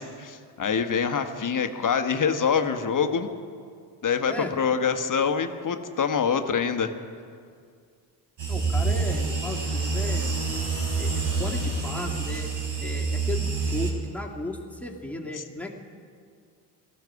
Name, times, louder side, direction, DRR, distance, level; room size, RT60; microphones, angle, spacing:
voice 1, 0.0-3.3 4.0-6.9 15.3-15.4, left 6 dB, 40° left, 7 dB, 1.3 m, -25 dB
sound 1, 8.4-13.9, right 4 dB, 60° right, 4.2 m, -27 dB
voice 2, 8.5-10.3 11.0-12.5 12.8-15.7, left 2 dB, 5° left, -1 dB, 2.3 m, -35 dB
18.0 x 14.0 x 4.8 m, 2.2 s
hypercardioid pair, 55°, 49 cm